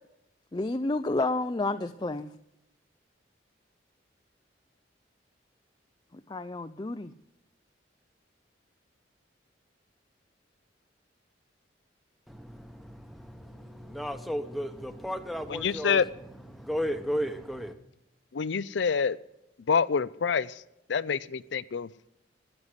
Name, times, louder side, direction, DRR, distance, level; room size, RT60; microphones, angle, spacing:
voice 1, 0.5-2.3 6.3-7.1, left 2 dB, 25° left, 0.5 m, -30 dB
voice 2, 12.3-16.0 16.4-17.7, equal, ahead, 1.1 m, -34 dB
voice 3, 15.5-16.1 18.3-19.2 19.7-20.6 20.9-21.9, left 6 dB, 75° left, 0.5 m, -27 dB
12.5 x 10.0 x 8.0 m
head